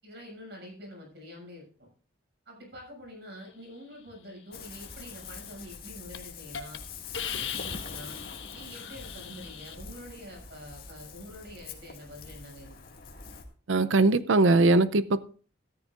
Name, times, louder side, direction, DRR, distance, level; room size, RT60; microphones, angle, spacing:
voice 1, 0.0-1.9 2.4-6.8 7.2-8.2 8.5-12.9, equal, 60° right, 6.7 m, -46 dB
Ocean, 4.5-13.4, left 5 dB, 50° left, 2.1 m, -44 dB
Hiss, 5.5-5.8 6.1-6.2 6.5-6.8 7.1-9.7, left 8 dB, 80° left, 1.3 m, -39 dB
voice 2, 13.7-15.2, right 3 dB, 85° right, 0.6 m, -21 dB
14.5 x 13.5 x 2.5 m
head